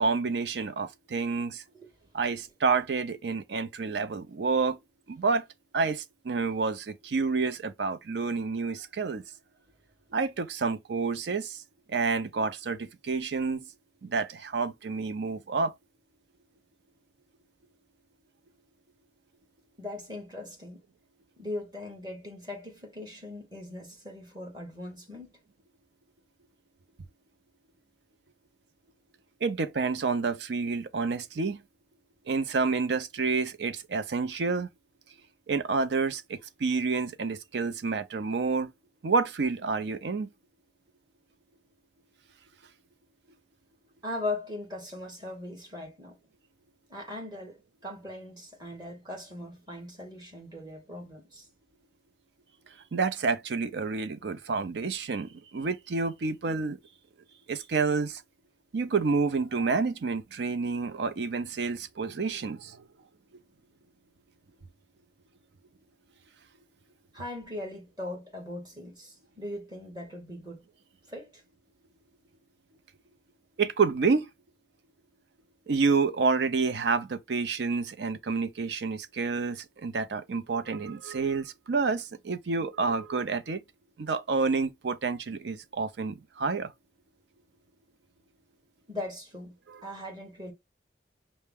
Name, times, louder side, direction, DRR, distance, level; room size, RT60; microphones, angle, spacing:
voice 1, 0.0-1.6 2.1-4.8 5.1-5.4 5.7-9.2 10.1-11.6 11.9-13.6 14.0-15.7 29.4-31.6 32.3-34.7 35.5-38.7 39.0-40.3 52.9-56.8 57.5-58.2 58.7-62.8 73.6-74.3 75.7-83.6 84.0-86.7 89.7-89.8, right 4 dB, 75° right, 0.5 m, -29 dB
voice 2, 19.8-20.8 21.4-25.3 44.0-46.2 46.9-51.5 67.1-70.6 71.1-71.4 88.9-89.5 89.8-90.5, left 2 dB, 25° right, 1.5 m, -39 dB
5.6 x 2.1 x 3.4 m
head